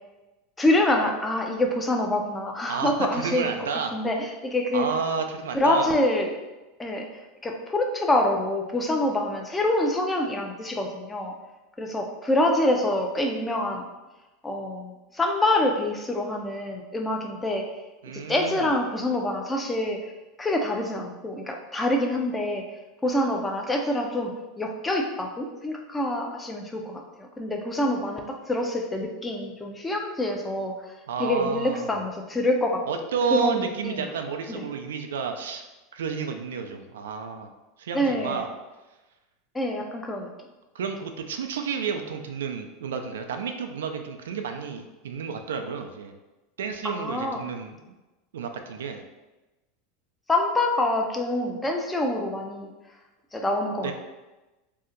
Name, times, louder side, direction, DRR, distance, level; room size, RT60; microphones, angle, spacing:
voice 1, 0.6-3.5 3.9-4.8 5.5-6.3 6.8-7.1 7.4-11.3 11.8-13.8 14.4-17.6 18.1-20.1 20.4-22.6 23.0-30.7 31.2-32.8 33.3-34.1 34.5-34.6 37.9-38.5 39.5-40.3 46.8-47.4 50.3-52.7 53.3-53.9, left 1 dB, 15° left, 2 dB, 0.5 m, -26 dB
voice 2, 2.7-3.9 4.7-5.9 18.0-18.7 31.1-32.0 32.9-35.6 35.9-37.5 37.8-38.5 40.7-46.2 46.6-47.8 48.3-49.0 53.8-53.9, right 6 dB, 85° right, 5 dB, 0.3 m, -31 dB
2.6 x 2.1 x 3.7 m, 1.1 s
hypercardioid pair, 105°, 0 cm